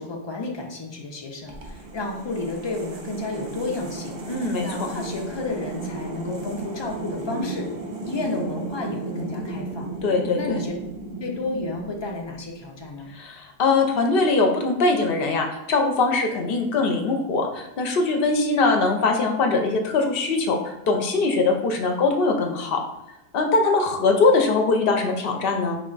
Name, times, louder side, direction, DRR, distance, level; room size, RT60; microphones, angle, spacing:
voice 1, 0.0-4.1 4.6-7.7 8.0-9.9 10.4-10.7 11.2-13.1, left 2 dB, 35° left, 1 dB, 0.5 m, -31 dB
sound 1, 1.5-12.6, right 2 dB, 65° right, 0.8 m, -34 dB
voice 2, 4.3-4.9 10.0-10.6 13.1-22.8 23.3-25.8, left 3 dB, 70° left, 4 dB, 0.8 m, -22 dB
3.3 x 3.1 x 3.9 m, 0.92 s
omnidirectional pair, 1.0 m